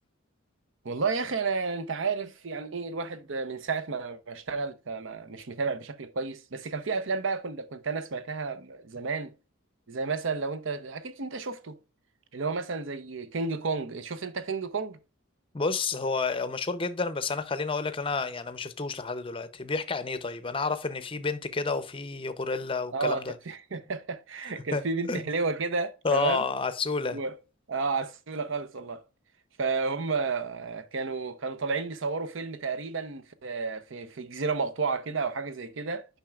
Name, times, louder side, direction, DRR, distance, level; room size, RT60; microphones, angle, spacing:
voice 1, 0.8-9.3 9.9-11.8 12.3-15.0 22.9-26.4 27.1-27.4 27.7-29.0 29.6-36.1, right 4 dB, 65° right, 0.7 m, -32 dB
voice 2, 15.5-23.3 24.7-24.8 25.1-25.2 26.0-27.2, left 4 dB, 25° left, 0.6 m, -30 dB
8.8 x 5.7 x 2.4 m
head